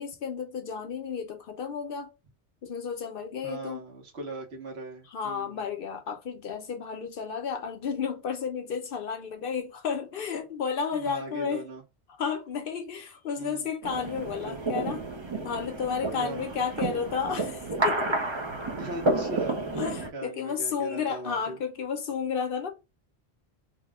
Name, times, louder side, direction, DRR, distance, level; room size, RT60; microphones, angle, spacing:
voice 1, 0.0-2.1 2.6-3.9 5.1-11.6 12.2-15.0 15.4-18.2 18.9-19.0 19.3-22.7, left 6 dB, 60° left, 0.7 m, -32 dB
voice 2, 3.4-5.6 10.9-11.8 13.4-13.7 14.4-14.6 16.2-16.4 18.7-19.6 20.1-21.6, right 2 dB, 75° right, 1.2 m, -39 dB
sound 1, 13.8-20.1, right 2 dB, 40° right, 0.4 m, -31 dB
2.9 x 2.1 x 3.5 m
omnidirectional pair, 1.1 m